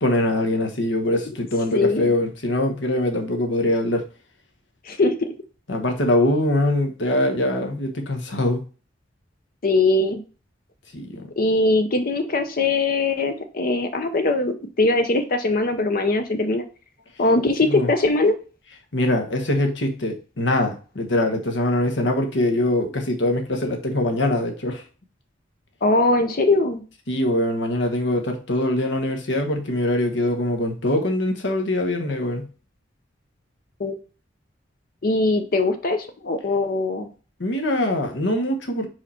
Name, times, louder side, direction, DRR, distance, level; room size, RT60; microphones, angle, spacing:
voice 1, 0.0-4.1 5.7-8.6 10.9-11.3 17.6-17.9 18.9-24.8 27.1-32.5 37.4-38.9, left 1 dB, 75° left, 1.3 m, -23 dB
voice 2, 1.7-2.1 4.9-5.3 9.6-10.2 11.4-16.6 17.2-18.3 25.8-26.8 33.8-34.0 35.0-37.1, left 2 dB, 50° left, 0.7 m, -21 dB
4.9 x 4.5 x 4.3 m
head